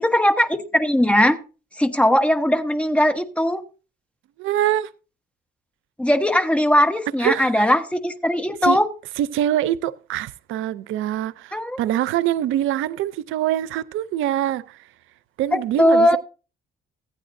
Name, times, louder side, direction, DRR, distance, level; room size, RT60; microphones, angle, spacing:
voice 1, 0.0-1.4 1.8-3.6 6.0-8.9 11.5-11.8 15.5-16.2, equal, 5° left, 1.1 m, -19 dB
voice 2, 4.4-4.9 7.2-7.7 8.6-8.8 9.2-14.8 15.4-16.2, right 12 dB, 90° right, 0.5 m, -24 dB
16.0 x 9.2 x 2.6 m
cardioid pair, 90°, 20 cm